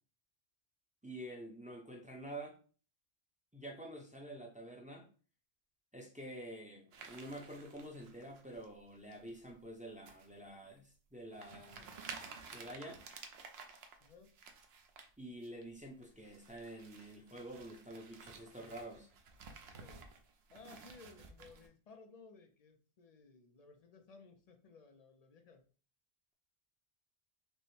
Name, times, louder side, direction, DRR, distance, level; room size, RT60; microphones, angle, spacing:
voice 1, 1.0-2.6 3.5-5.0 5.9-11.9 12.5-13.0 15.2-19.1, right 1 dB, 10° right, 0 dB, 0.5 m, -48 dB
sound 1, 6.9-8.7 9.1-9.5 10.1-10.3 10.8-10.9 11.3-15.1 15.4-15.6 16.0-21.7, right 5 dB, 65° right, 0.8 m, -53 dB
voice 2, 14.0-14.3 19.7-20.1 20.5-25.6, left 4 dB, 50° left, 5 dB, 0.5 m, -59 dB
5.2 x 2.1 x 3.1 m, 0.39 s
omnidirectional pair, 1.2 m